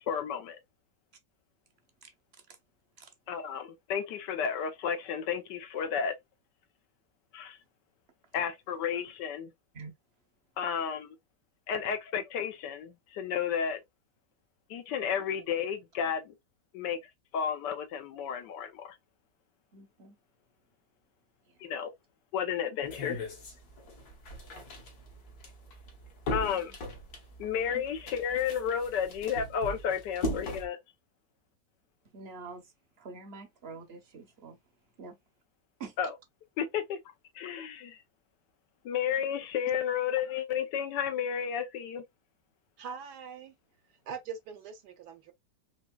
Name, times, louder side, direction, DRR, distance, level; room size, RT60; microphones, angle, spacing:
voice 1, 0.1-0.6 3.3-6.1 7.3-7.6 8.3-9.5 10.6-11.2 11.7-13.8 14.7-16.3 16.7-17.0 17.3-19.0 21.6-21.9 22.3-23.2 26.3-26.7 27.4-30.8 36.0-36.1 36.6-37.0 37.3-38.0 38.8-42.0, left 8 dB, 80° left, 1.3 m, -32 dB
voice 2, 19.7-20.2 21.5-21.7 24.4-24.7 26.5-26.6 27.7-27.8 32.1-32.7 33.0-34.6 35.0-35.1 35.8-35.9, right 4 dB, 50° right, 0.8 m, -46 dB
sound 1, 22.8-30.7, equal, 65° left, 1.7 m, -39 dB
voice 3, 42.8-43.5 43.8-45.3, right 6 dB, 75° right, 1.2 m, -42 dB
4.4 x 2.9 x 2.3 m
omnidirectional pair, 1.8 m